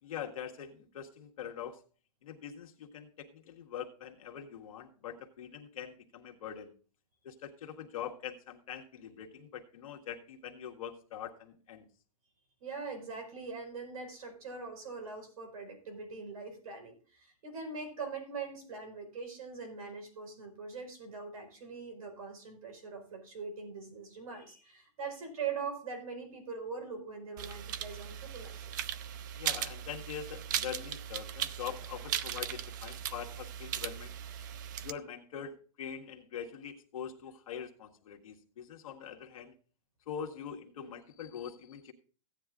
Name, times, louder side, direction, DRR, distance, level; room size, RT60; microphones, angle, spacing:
voice 1, 0.0-1.8 2.2-6.7 7.2-11.9 29.4-34.1 34.8-39.6 40.1-41.9, left 8 dB, 70° left, 2 dB, 1.7 m, -43 dB
voice 2, 12.6-28.7, right 5 dB, 75° right, 6 dB, 4.7 m, -42 dB
sound 1, 27.4-34.9, right 10 dB, 35° right, 0.4 m, -38 dB
16.0 x 9.9 x 2.4 m, 0.39 s
supercardioid pair, 175°, 18 cm